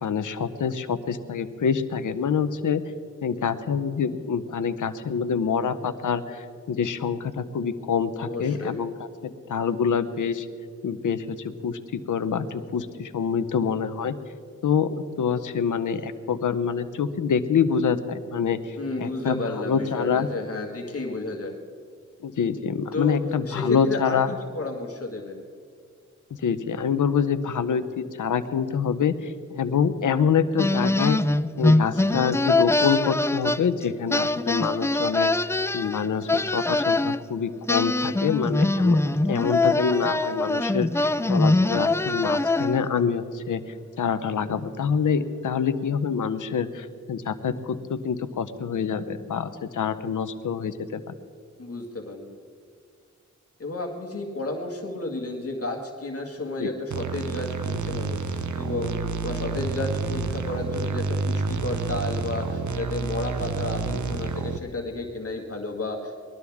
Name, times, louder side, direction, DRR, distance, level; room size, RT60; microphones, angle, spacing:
voice 1, 0.0-2.8 3.2-8.9 9.2-10.5 10.8-14.2 14.6-20.3 22.2-24.3 26.4-31.2 31.6-35.3 35.7-39.0 39.3-43.6 44.0-51.1 56.6-56.7, left 6 dB, 85° left, 11 dB, 0.8 m, -26 dB
voice 2, 8.2-8.8 18.8-21.6 22.9-24.2 24.5-25.4 51.6-52.4 53.6-66.2, left 2 dB, 50° left, 1 dB, 1.9 m, -32 dB
sound 1, 30.6-33.8 34.1-37.2 37.7-42.9, left 2 dB, 10° left, 0.3 m, -23 dB
sound 2, 56.9-64.6, right 4 dB, 70° right, 0.8 m, -29 dB
21.5 x 12.5 x 3.6 m, 2.2 s
wide cardioid pair, 80°, 30 cm